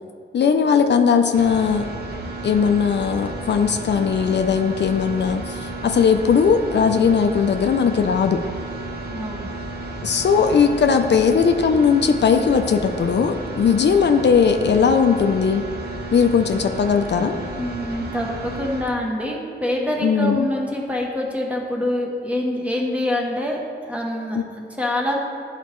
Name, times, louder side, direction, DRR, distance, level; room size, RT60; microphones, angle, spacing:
voice 1, 0.3-1.9 2.4-8.4 10.0-15.6 16.1-17.4 20.0-20.5 24.3-24.4, left 6 dB, 70° left, 6 dB, 0.4 m, -18 dB
sound 1, 1.3-18.8, right 2 dB, 60° right, 0.8 m, -32 dB
voice 2, 9.1-9.5 17.5-23.6 23.9-25.2, left 1 dB, 5° right, -2 dB, 1.0 m, -25 dB
11.0 x 4.1 x 3.1 m, 2.2 s
wide cardioid pair, 115°, 19 cm